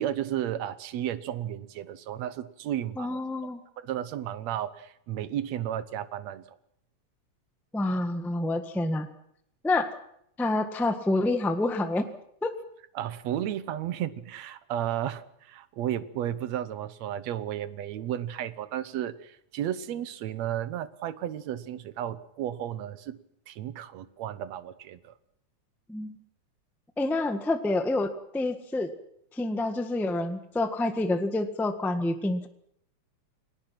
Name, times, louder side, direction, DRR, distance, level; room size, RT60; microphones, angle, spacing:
voice 1, 0.0-3.2 3.8-6.4 13.0-23.2 23.5-25.1, right 11 dB, 70° right, 14 dB, 2.2 m, -33 dB
voice 2, 3.0-3.6 7.7-9.1 9.6-9.9 10.4-12.1 12.4-12.5 25.9-26.2 27.0-28.9 29.3-32.5, left 2 dB, ahead, 7 dB, 0.6 m, -28 dB
29.5 x 19.0 x 6.0 m, 0.71 s
omnidirectional pair, 3.3 m